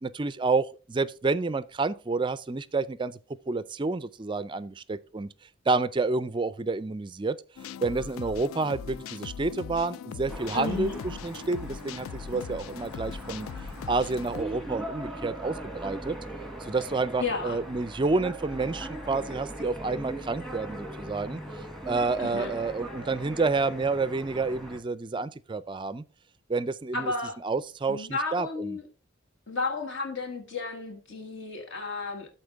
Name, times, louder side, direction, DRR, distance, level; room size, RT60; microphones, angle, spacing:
voice 1, 0.0-3.2 3.5-5.3 5.7-7.4 7.8-10.9 11.2-13.5 13.9-16.2 16.6-26.0 26.5-27.1 27.4-28.8, right 3 dB, 25° right, 0.4 m, -29 dB
sound 1, 7.6-14.4, left 7 dB, 80° left, 0.3 m, -40 dB
sound 2, 10.3-24.8, right 1 dB, ahead, 1.3 m, -40 dB
voice 2, 10.5-11.0 17.2-17.6 22.2-22.5 26.9-27.4 27.9-28.8 29.5-32.3, left 3 dB, 60° left, 1.5 m, -32 dB
13.0 x 4.4 x 3.5 m
head